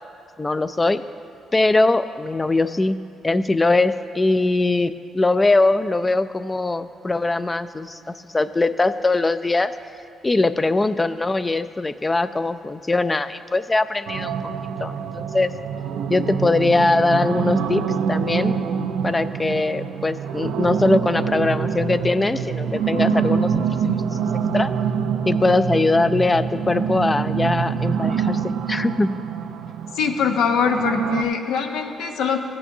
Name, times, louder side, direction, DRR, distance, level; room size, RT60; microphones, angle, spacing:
voice 1, 0.4-1.0 1.5-3.0 3.2-9.7 10.2-14.4 14.8-15.5 16.1-18.5 19.0-24.7 25.3-28.4 28.7-29.2, left 2 dB, 20° left, 13 dB, 0.3 m, -21 dB
sound 1, 14.1-31.2, right 7 dB, 90° right, 0.4 m, -25 dB
voice 2, 29.9-32.4, left 6 dB, 85° left, 5 dB, 0.7 m, -22 dB
15.0 x 8.5 x 2.7 m, 2.8 s
cardioid pair, 90°, 0 cm